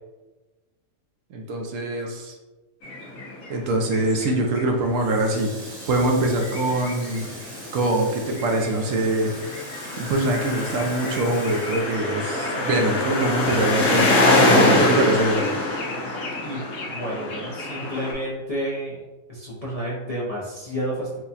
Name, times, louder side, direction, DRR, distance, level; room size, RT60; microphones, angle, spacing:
voice 1, 1.3-2.3 3.5-9.4 10.0-15.5, right 1 dB, 75° right, 2 dB, 1.0 m, -24 dB
sound 1, 2.8-4.6 4.9-5.0 5.3-18.1, left 2 dB, 85° left, 1.3 m, -24 dB
Water tap faucet, 4.9-12.8 13.1-14.4, right 1 dB, 45° right, 1.1 m, -42 dB
voice 2, 16.4-19.0 19.3-21.2, equal, 45° left, -8 dB, 0.5 m, -30 dB
4.6 x 2.2 x 2.8 m, 1.2 s
omnidirectional pair, 1.4 m